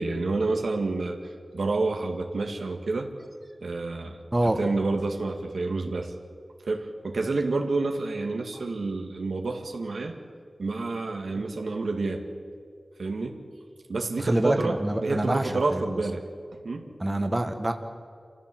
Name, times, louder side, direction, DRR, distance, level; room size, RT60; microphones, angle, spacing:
voice 1, 0.0-3.1 3.6-4.2 4.6-6.1 6.7-10.2 10.6-12.3 13.0-13.4 13.9-16.2 16.5-16.9, right 3 dB, 85° right, 3 dB, 1.9 m, -29 dB
voice 2, 14.2-16.0 17.0-17.7, right 1 dB, 20° right, 5 dB, 1.5 m, -26 dB
27.5 x 15.0 x 7.8 m, 2.1 s
wide cardioid pair, 80°, 0 cm